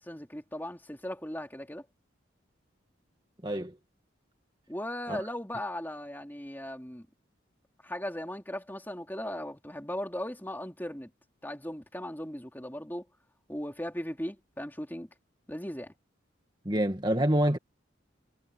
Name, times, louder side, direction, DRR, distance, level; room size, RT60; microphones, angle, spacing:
voice 1, 0.0-1.8 4.7-7.1 7.8-11.1 11.4-13.0 13.5-15.1 15.5-15.9, left 1 dB, 10° left, 3.2 m, -37 dB
voice 2, 16.7-17.6, right 1 dB, 20° right, 2.1 m, -26 dB
head